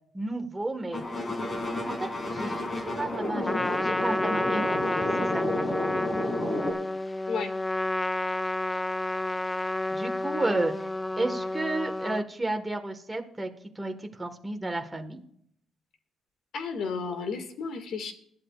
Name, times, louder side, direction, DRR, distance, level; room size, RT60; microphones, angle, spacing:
voice 1, 0.1-1.0 1.8-5.0 5.3-5.4 9.9-10.9 11.2-13.5 13.7-15.2, right 2 dB, 15° right, 3 dB, 1.5 m, -32 dB
sound 1, 0.9-6.7, left 1 dB, 30° left, 2.6 m, -31 dB
Trumpet, 3.4-12.2, left 2 dB, 15° left, 0.5 m, -30 dB
voice 2, 16.5-18.1, left 5 dB, 70° left, 6 dB, 2.0 m, -32 dB
21.0 x 11.5 x 2.5 m, 0.68 s
cardioid pair, 90°, 0 cm